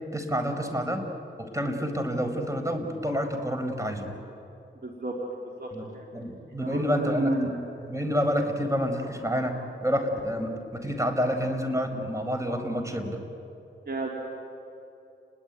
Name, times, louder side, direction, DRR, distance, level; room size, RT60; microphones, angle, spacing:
voice 1, 0.1-1.0 1.4-4.1 5.7-7.5 7.8-13.2, equal, 15° right, 5 dB, 5.1 m, -29 dB
voice 2, 4.8-5.2 5.6-6.1 6.6-7.6 13.9-14.1, right 2 dB, 50° right, -1 dB, 3.6 m, -31 dB
29.5 x 21.5 x 9.4 m, 2.8 s
cardioid pair, 50°, 20 cm